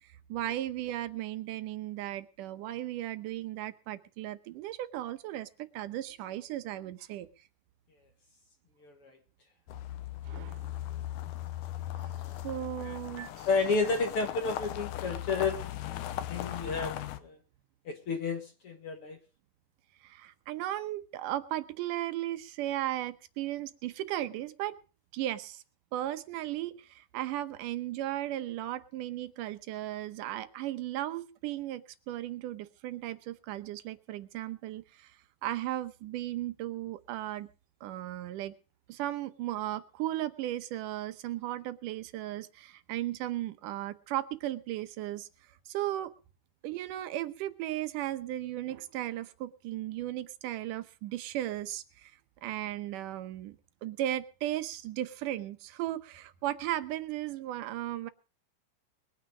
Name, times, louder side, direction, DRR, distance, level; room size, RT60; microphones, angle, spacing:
voice 1, 0.0-7.3 10.2-10.7 12.4-13.5 20.0-24.8 25.1-25.6 25.9-37.5 37.8-38.5 38.9-45.3 45.7-46.1 46.6-52.1 52.4-53.6 53.8-58.1, right 14 dB, 90° right, 12 dB, 2.5 m, -36 dB
voice 2, 8.8-9.2 12.3-12.5 12.8-13.0 13.5-15.8 16.3-17.4 17.9-19.2, left 4 dB, 55° left, 5 dB, 2.0 m, -31 dB
sound 1, 9.7-17.2, left 12 dB, 85° left, 2.4 m, -38 dB
21.5 x 9.2 x 5.0 m, 0.35 s
omnidirectional pair, 3.6 m